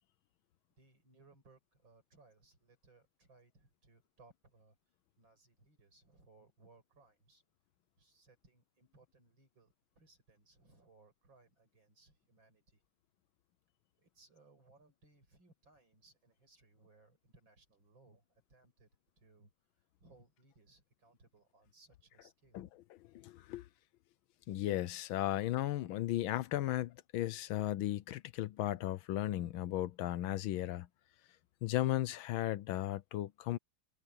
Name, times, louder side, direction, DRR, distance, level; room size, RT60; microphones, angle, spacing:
voice 1, 0.8-4.8 5.2-7.4 8.0-12.8 14.0-18.9 19.2-22.8, right 3 dB, 65° right, 7.3 m, -66 dB
voice 2, 23.1-23.6 24.5-30.9 31.6-33.6, left 14 dB, 80° left, 1.4 m, -35 dB
omnidirectional pair, 2.3 m